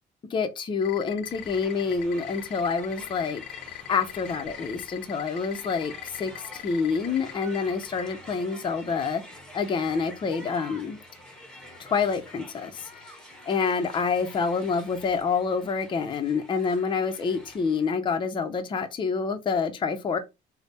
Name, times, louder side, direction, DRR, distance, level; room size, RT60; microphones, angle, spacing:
voice 1, 0.3-3.4 3.7-9.2 9.5-11.0 11.8-12.9 13.5-20.2, left 5 dB, 30° left, 0.5 m, -27 dB
sound 1, 0.8-8.1, left 16 dB, 90° left, 0.5 m, -39 dB
Crowd, 1.2-17.9, equal, 5° left, 1.0 m, -47 dB
3.3 x 2.0 x 4.1 m
cardioid pair, 110°, 17 cm